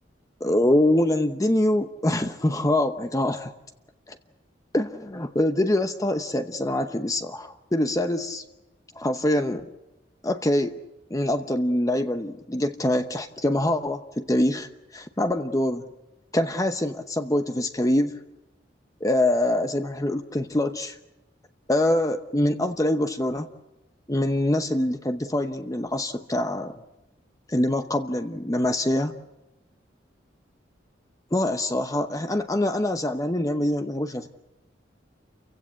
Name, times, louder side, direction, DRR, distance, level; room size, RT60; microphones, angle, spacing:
voice 1, 0.4-3.5 4.1-4.2 4.7-8.4 9.0-9.7 10.2-10.8 11.1-15.9 16.3-18.2 19.0-20.9 21.7-23.5 24.1-26.7 27.5-29.2 31.3-34.3, left 1 dB, 20° left, 7 dB, 0.9 m, -24 dB
29.5 x 16.0 x 8.2 m, 0.98 s
head